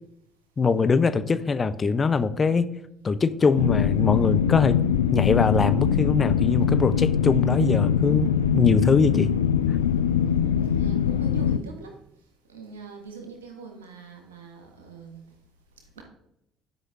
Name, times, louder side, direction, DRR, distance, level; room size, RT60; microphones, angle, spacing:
voice 1, 0.6-2.7 3.0-4.8 5.1-9.3, left 4 dB, 30° left, 12 dB, 0.6 m, -22 dB
sound 1, 3.6-11.6, left 8 dB, 80° left, 0.3 m, -22 dB
voice 2, 10.6-11.9 12.5-15.2 15.9-16.0, right 4 dB, 80° right, 3 dB, 1.6 m, -42 dB
11.0 x 5.4 x 3.7 m, 0.77 s
figure-of-eight pair, 55°, 0 cm